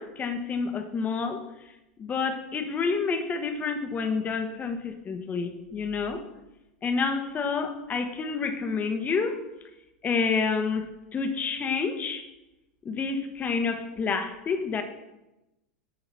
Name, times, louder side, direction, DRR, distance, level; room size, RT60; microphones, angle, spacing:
voice 1, 0.0-1.4 2.0-6.2 6.8-9.4 10.0-12.3 12.8-14.8, left 5 dB, 25° left, 7 dB, 1.1 m, -29 dB
10.5 x 3.9 x 5.8 m, 0.96 s
hypercardioid pair, 100°, 6 cm